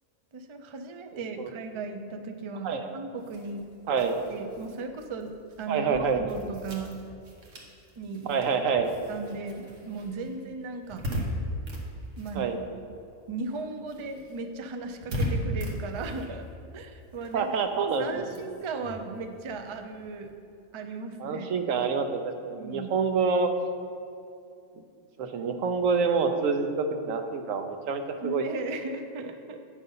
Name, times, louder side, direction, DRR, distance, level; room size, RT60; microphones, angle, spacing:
voice 1, 0.3-3.7 4.3-5.3 5.6-7.0 8.0-8.4 9.1-11.0 12.2-12.5 13.3-16.5 16.7-17.5 18.0-20.3 20.7-21.5 22.6-22.9 28.2-29.6, right 3 dB, 45° right, 6 dB, 0.4 m, -36 dB
sound 1, 3.2-13.1 13.4-20.3, equal, 75° right, 1.5 m, -38 dB
voice 2, 3.9-4.2 5.7-6.2 8.3-8.9 12.3-12.6 17.3-18.3 21.2-23.5 24.8-24.9 25.2-28.4, right 5 dB, 90° right, 6 dB, 1.1 m, -27 dB
9.0 x 5.3 x 5.4 m, 2.5 s
omnidirectional pair, 1.3 m